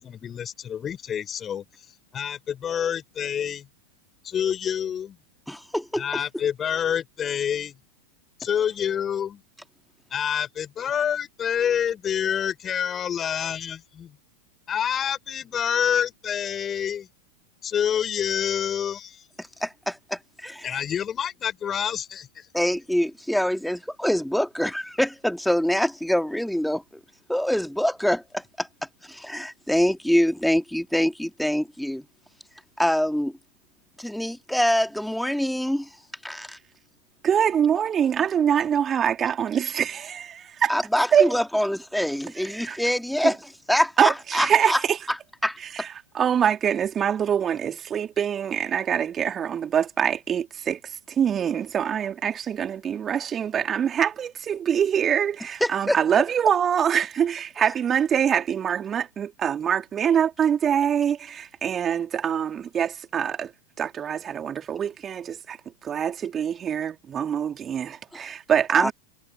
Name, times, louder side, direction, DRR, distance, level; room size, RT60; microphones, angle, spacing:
voice 1, 0.0-1.6 2.1-3.7 4.2-5.2 6.0-7.7 8.4-9.4 10.1-14.2 14.7-17.1 17.6-19.3 20.6-22.5, left 8 dB, 25° left, 6.2 m, -27 dB
voice 2, 5.5-6.2 19.4-20.8 22.5-26.8 27.3-28.7 29.0-32.0 32.8-33.4 34.0-36.0 36.2-36.6 40.7-44.8 45.1-45.2 45.4-45.6 55.6-56.0 68.1-68.3 68.7-68.9, equal, ahead, 2.0 m, -25 dB
voice 3, 37.2-40.7 41.1-41.3 42.7-42.8 43.2-43.3 44.0-45.0 45.7-45.9 46.1-63.5 63.8-65.6 65.8-68.9, right 8 dB, 25° right, 3.4 m, -24 dB
figure-of-eight pair, 90°, 0 cm